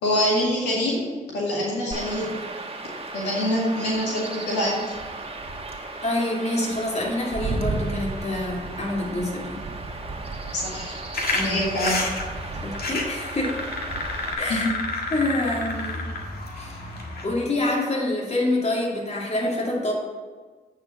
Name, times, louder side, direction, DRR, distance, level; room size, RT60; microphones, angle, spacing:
voice 1, 0.0-1.1 1.3-2.3 3.1-4.8 10.5-11.0 11.4-12.1 14.5-14.7, equal, 85° left, -5 dB, 2.0 m, -25 dB
Chirp tweet / Wind / Stream, 1.9-14.3, right 3 dB, 35° right, 1.4 m, -34 dB
voice 2, 6.0-9.6 11.3-11.6 12.6-13.6 14.4-14.7 15.1-16.1 16.5-16.8 17.2-19.9, left 1 dB, 40° left, -3 dB, 2.8 m, -26 dB
sound 1, 11.1-17.3, left 2 dB, 60° left, 1.7 m, -30 dB
8.4 x 4.7 x 6.9 m, 1.4 s
supercardioid pair, 40°, 17 cm